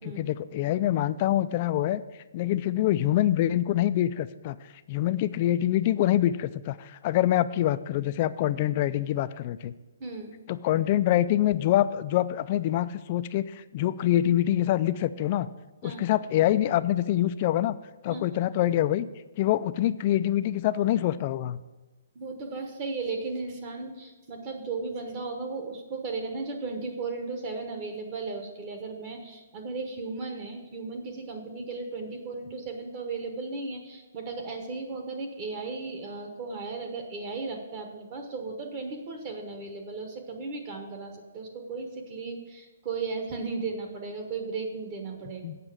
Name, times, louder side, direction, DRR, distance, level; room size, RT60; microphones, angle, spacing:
voice 1, 0.0-2.0 2.3-4.6 4.9-9.7 10.5-15.5 15.8-17.7 18.0-19.1 19.4-21.6 45.4-45.6, left 13 dB, 30° left, 13 dB, 0.3 m, -25 dB
voice 2, 10.0-10.4 15.8-16.0 18.1-18.2 22.1-45.4, right 4 dB, 30° right, 3 dB, 1.1 m, -35 dB
8.0 x 5.8 x 7.5 m, 1.2 s
hypercardioid pair, 165°, 0 cm